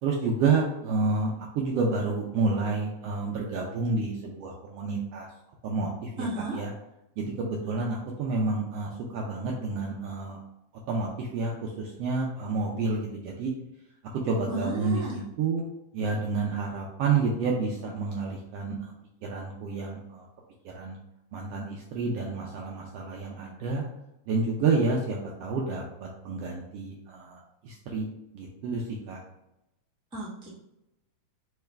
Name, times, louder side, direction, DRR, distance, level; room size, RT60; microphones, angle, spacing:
voice 1, 0.0-5.3 5.6-6.7 7.2-10.4 10.9-13.5 14.2-15.6 15.9-18.9 19.2-20.3 20.6-21.0 21.3-23.8 24.3-28.1 28.3-29.2, right 4 dB, 80° right, -1 dB, 1.4 m, -29 dB
voice 2, 6.2-6.6 14.5-15.2 30.1-30.5, right 1 dB, 5° right, -8 dB, 0.5 m, -33 dB
4.7 x 3.4 x 3.2 m, 0.88 s
omnidirectional pair, 3.3 m